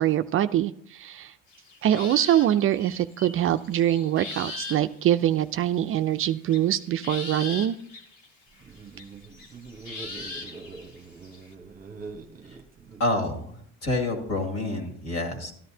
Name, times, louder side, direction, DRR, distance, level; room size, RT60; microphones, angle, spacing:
voice 1, 0.0-1.3 1.8-7.8, right 11 dB, 45° right, 10 dB, 0.4 m, -24 dB
sound 1, 1.5-4.8 5.2-5.3 6.5-8.3 8.6-11.5, left 3 dB, 70° left, 2.0 m, -39 dB
sound 2, 8.5-13.6, right 4 dB, 30° right, 0.9 m, -44 dB
voice 2, 13.0-15.5, left 2 dB, 50° left, 3 dB, 2.4 m, -28 dB
13.5 x 11.0 x 2.8 m, 0.64 s
supercardioid pair, 100°, 32 cm